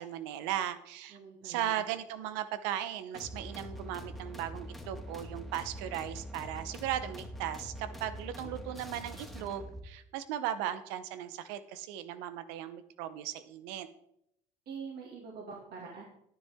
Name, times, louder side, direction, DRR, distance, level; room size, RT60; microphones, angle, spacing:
voice 1, 0.0-1.2 1.4-13.9, right 11 dB, 85° right, 12 dB, 0.9 m, -37 dB
voice 2, 1.1-1.8 7.9-8.1 8.4-8.5 14.7-16.0, right 5 dB, 60° right, -2 dB, 2.4 m, -45 dB
sound 1, 3.1-9.8, equal, ahead, 2.1 m, -44 dB
10.5 x 9.8 x 3.6 m, 0.76 s
supercardioid pair, 75°, 18 cm